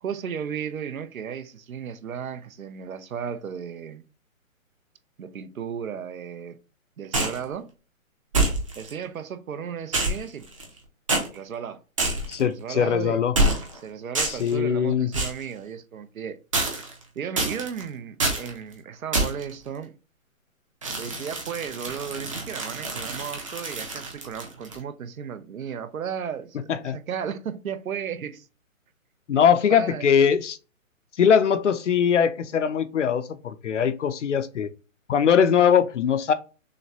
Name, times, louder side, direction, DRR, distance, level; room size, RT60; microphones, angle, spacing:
voice 1, 0.0-4.0 5.2-6.6 7.0-7.7 8.8-10.5 11.3-11.8 12.4-13.2 13.8-16.4 17.2-19.9 21.0-28.5 29.3-29.4 29.7-30.2, right 7 dB, 75° right, 0.7 m, -35 dB
sound 1, 7.1-7.4 8.3-8.9 9.9-10.8 11.1-11.3 12.0-12.4 13.3-13.8 14.1-14.5 15.1-15.4 16.5-17.0 17.4-17.8 18.2-18.5 19.1-19.5 20.8-24.8, right 2 dB, 25° right, 0.7 m, -26 dB
voice 2, 12.3-13.3 14.3-15.1 26.7-27.0 29.3-30.6 31.2-34.7 35.1-36.3, left 7 dB, 60° left, 0.6 m, -21 dB
6.2 x 2.2 x 2.7 m
hypercardioid pair, 165°, 42 cm